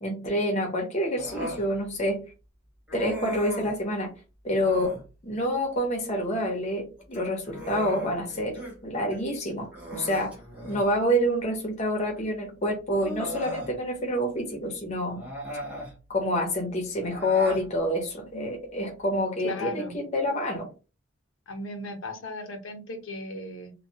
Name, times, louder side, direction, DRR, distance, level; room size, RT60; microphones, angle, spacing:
voice 1, 0.0-2.2 2.9-4.1 4.4-10.4 10.7-15.2 16.1-20.7, equal, 35° left, 2 dB, 0.7 m, -27 dB
Human voice, 1.2-1.7 2.9-3.8 4.5-5.1 7.0-8.8 9.1-9.2 9.7-10.9 12.1-12.2 12.9-13.7 15.1-16.0 17.0-17.7, equal, 5° right, 0.7 m, -37 dB
voice 2, 19.4-19.9 21.5-23.7, left 2 dB, 90° left, 5 dB, 0.7 m, -36 dB
2.2 x 2.2 x 2.7 m, 0.31 s
head